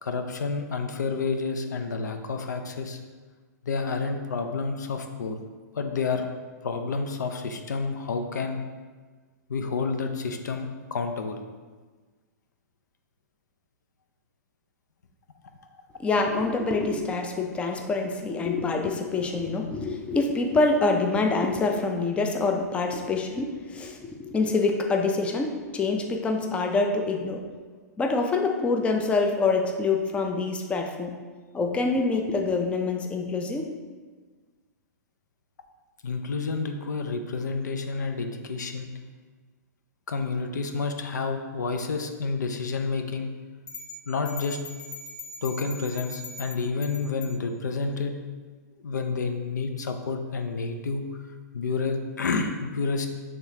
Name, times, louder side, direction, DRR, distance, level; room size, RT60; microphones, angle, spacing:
voice 1, 0.0-3.0 3.6-5.4 5.7-6.3 6.6-8.6 9.5-11.4 36.0-38.9 40.1-43.3 44.1-44.6 45.4-48.1 48.8-51.0 51.5-53.1, left 4 dB, 90° left, 6 dB, 0.5 m, -29 dB
voice 2, 16.0-27.4 28.0-31.2 31.5-33.7, left 3 dB, 10° left, 3 dB, 0.4 m, -26 dB
sound 1, 43.7-47.4, left 3 dB, 65° left, 1.4 m, -41 dB
5.6 x 3.5 x 2.7 m, 1.4 s
hypercardioid pair, 130°, 9 cm